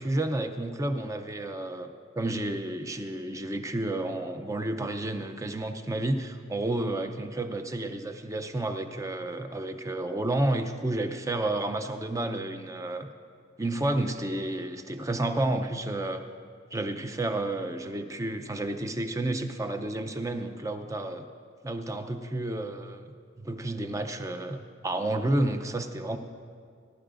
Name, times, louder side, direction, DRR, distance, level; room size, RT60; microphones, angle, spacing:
voice 1, 0.0-1.9 2.1-13.1 13.6-16.2 16.7-21.2 21.6-23.1 23.4-26.2, right 1 dB, 15° right, 7 dB, 0.5 m, -31 dB
19.5 x 11.5 x 2.5 m, 2.1 s
head